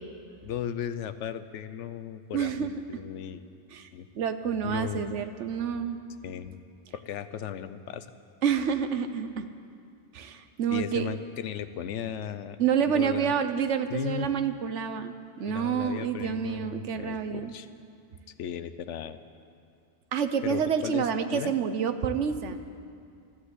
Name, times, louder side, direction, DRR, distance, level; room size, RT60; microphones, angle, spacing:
voice 1, 0.4-3.4 3.9-4.1 4.6-5.1 6.2-6.6 6.9-8.1 10.7-12.6 12.9-13.3 13.9-14.3 15.5-17.7 18.4-19.2 20.4-21.1 21.3-21.5, left 9 dB, 85° left, 12 dB, 1.0 m, -36 dB
voice 2, 2.3-2.7 3.7-3.9 4.2-6.0 8.4-9.5 10.1-11.0 12.6-17.5 20.1-22.6, right 7 dB, 85° right, 9 dB, 1.2 m, -28 dB
13.0 x 12.5 x 8.2 m, 2.3 s
omnidirectional pair, 1.2 m